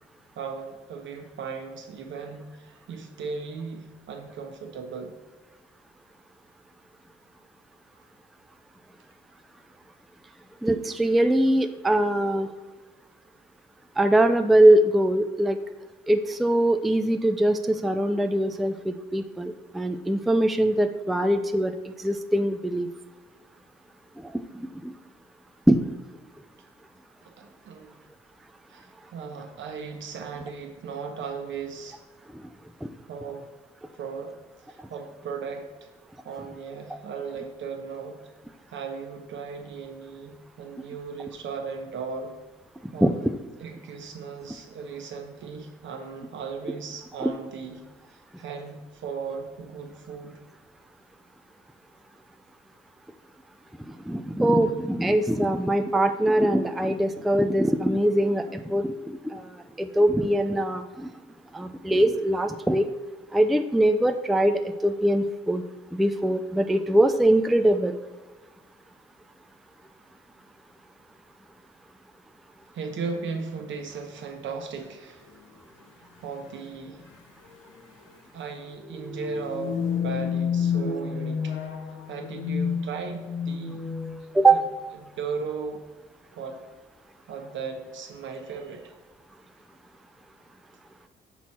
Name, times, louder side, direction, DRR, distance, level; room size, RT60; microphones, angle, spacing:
voice 1, 0.4-5.2 7.9-8.1 27.2-27.9 28.7-32.0 33.1-33.4 33.9-35.9 36.2-38.2 38.7-42.3 42.9-43.3 43.6-47.8 48.1-50.4 72.7-75.3 76.0-77.1 78.3-81.6 82.1-83.8 84.5-84.6 85.0-85.8 86.3-86.6 87.3-88.9, right 5 dB, 70° right, 4 dB, 1.0 m, -37 dB
voice 2, 10.6-12.5 14.0-15.6 16.1-22.9 24.2-24.9 25.7-25.8 32.8-32.9 43.0-43.3 47.2-47.3 54.1-59.5 59.8-61.1 61.5-62.9 63.3-65.6 65.9-67.9 84.3-84.6, right 1 dB, ahead, 7 dB, 0.3 m, -22 dB
sound 1, 75.3-75.4 76.4-76.7 77.0-77.1 77.5-77.8 78.8-84.5, left 6 dB, 85° left, 0.8 m, -30 dB
6.1 x 4.4 x 4.2 m, 1.2 s
cardioid pair, 90°, 20 cm